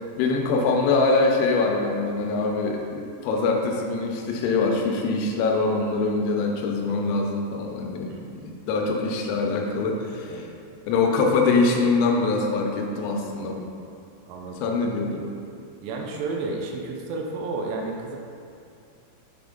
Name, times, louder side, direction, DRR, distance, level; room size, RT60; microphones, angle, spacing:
voice 1, 0.2-8.1 8.4-10.5 10.9-13.6 14.6-15.2, left 3 dB, 85° left, 1 dB, 3.3 m, -23 dB
voice 2, 8.0-8.5 10.3-10.5 14.3-14.7 15.8-18.2, right 3 dB, 85° right, 1 dB, 3.1 m, -32 dB
8.0 x 3.4 x 3.7 m, 2.5 s
omnidirectional pair, 5.7 m